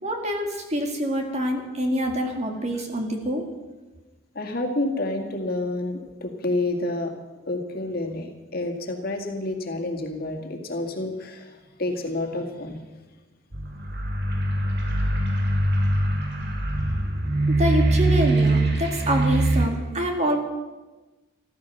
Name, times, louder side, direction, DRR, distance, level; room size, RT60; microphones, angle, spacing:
voice 1, 0.0-3.5 17.5-20.4, equal, 35° right, 3 dB, 2.3 m, -26 dB
voice 2, 4.3-7.2 7.4-12.8, left 2 dB, 50° left, 2 dB, 2.1 m, -29 dB
sound 1, 13.5-19.7, right 1 dB, 55° right, 2.3 m, -23 dB
14.5 x 14.0 x 6.8 m, 1.2 s
head